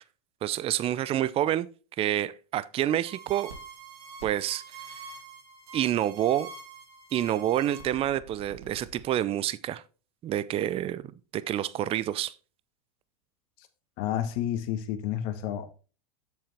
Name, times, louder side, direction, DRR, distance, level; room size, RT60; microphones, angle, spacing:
voice 1, 0.4-1.7 2.0-3.5 4.2-4.6 5.7-6.5 7.1-9.8 10.2-11.0 11.3-12.3, right 12 dB, 30° right, 0.5 m, -28 dB
sound 1, 3.0-9.0, right 4 dB, 80° right, 2.6 m, -45 dB
voice 2, 14.0-15.7, left 10 dB, 50° left, 1.6 m, -30 dB
7.6 x 7.4 x 3.4 m
hypercardioid pair, 110°, 20 cm